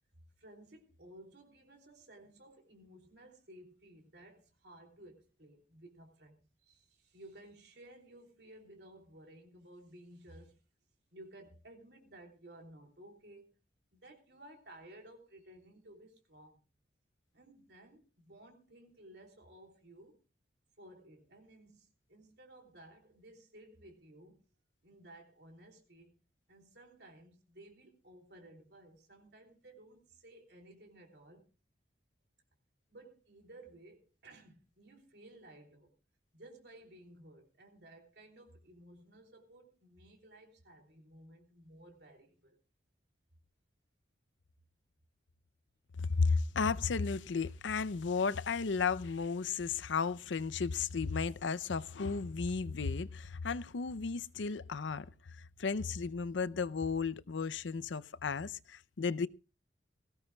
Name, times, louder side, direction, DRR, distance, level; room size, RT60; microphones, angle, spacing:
voice 1, 0.4-10.6 11.1-13.5 13.9-16.6 17.3-20.2 20.8-24.5 24.8-26.1 26.5-31.5 32.9-35.9 36.3-42.6, right 1 dB, 65° right, 3.3 m, -56 dB
voice 2, 46.0-55.1 55.6-59.3, left 5 dB, 85° left, 0.6 m, -34 dB
20.0 x 17.0 x 2.3 m
head